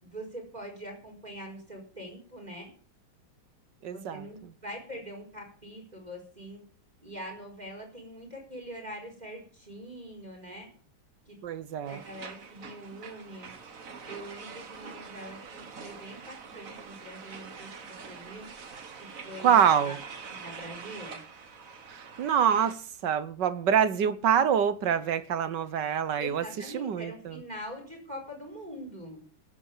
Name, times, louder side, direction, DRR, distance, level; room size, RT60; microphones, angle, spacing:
voice 1, 0.0-2.7 3.8-6.6 7.0-10.7 11.3-11.4 11.9-13.5 14.0-18.5 19.0-20.0 20.3-21.2 26.2-29.2, equal, 20° right, 4.9 m, -43 dB
voice 2, 3.8-4.3 11.4-12.0 19.4-20.0 21.9-22.8 23.0-26.4 26.7-27.3, right 8 dB, 65° right, 1.6 m, -25 dB
sound 1, 11.8-22.7, right 5 dB, 45° right, 1.8 m, -45 dB
14.0 x 10.5 x 7.2 m
omnidirectional pair, 2.2 m